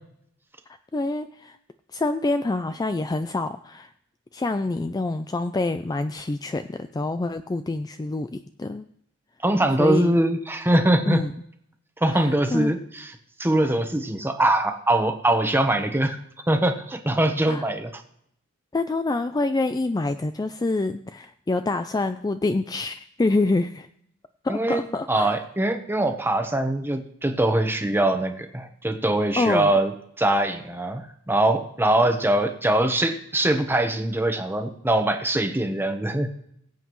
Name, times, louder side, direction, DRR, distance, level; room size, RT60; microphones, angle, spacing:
voice 1, 0.9-1.6 1.9-3.9 4.3-8.9 9.8-10.2 11.1-11.3 12.1-12.7 17.5-17.7 18.7-23.9 24.4-25.4 29.4-29.7, left 2 dB, 20° left, 9 dB, 0.3 m, -26 dB
voice 2, 9.4-11.2 12.0-13.1 13.4-16.2 16.5-17.9 24.5-29.9 30.2-36.3, right 1 dB, 10° right, 6 dB, 1.0 m, -22 dB
22.5 x 8.1 x 3.1 m, 0.72 s
head